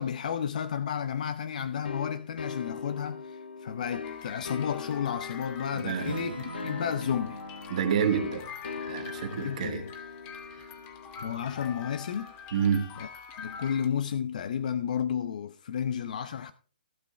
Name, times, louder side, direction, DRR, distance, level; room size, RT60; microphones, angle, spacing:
voice 1, 0.0-7.4 9.4-9.8 11.2-12.3 13.4-16.5, left 8 dB, 50° left, 0.8 m, -32 dB
sound 1, 1.8-12.3, left 5 dB, 75° left, 1.2 m, -41 dB
sound 2, 4.0-13.9, left 6 dB, 25° left, 1.8 m, -45 dB
voice 2, 5.7-6.3 7.7-8.5 8.9-9.8 10.5-10.7 12.5-12.9, right 7 dB, 45° right, 2.3 m, -29 dB
Acoustic guitar / Strum, 6.0-10.9, right 5 dB, 80° right, 1.3 m, -45 dB
16.0 x 6.1 x 4.5 m
hypercardioid pair, 150°, 5 cm